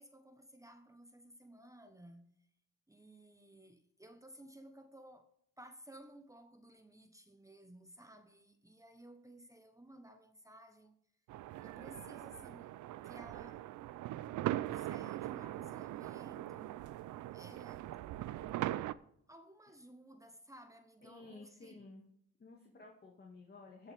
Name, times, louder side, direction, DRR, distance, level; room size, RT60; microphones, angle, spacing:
voice 1, 0.0-2.3 2.9-11.0 11.6-12.8 13.0-13.7 14.5-16.8 17.3-17.9 19.3-21.9, right 1 dB, 10° right, 1.2 m, -56 dB
sound 1, 11.3-18.9, right 14 dB, 80° right, 0.6 m, -41 dB
voice 2, 21.0-22.1 22.4-23.9, left 3 dB, 35° left, 2.3 m, -54 dB
17.0 x 7.1 x 3.6 m
cardioid pair, 90°, 30 cm